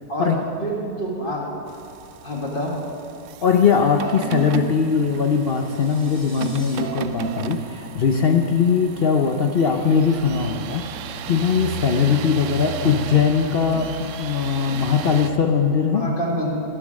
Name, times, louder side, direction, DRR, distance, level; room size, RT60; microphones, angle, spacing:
voice 1, 0.6-1.5 2.2-2.7 12.8-12.9 15.9-16.5, equal, 30° left, -3 dB, 2.2 m, -27 dB
sound 1, 1.7-15.3, right 9 dB, 85° right, 0.6 m, -34 dB
voice 2, 3.4-10.9 11.3-16.1, left 6 dB, 65° left, 4 dB, 0.5 m, -20 dB
sound 2, 4.9-6.8, right 1 dB, 60° right, 3.0 m, -47 dB
19.0 x 7.1 x 6.4 m, 2.6 s
omnidirectional pair, 1.9 m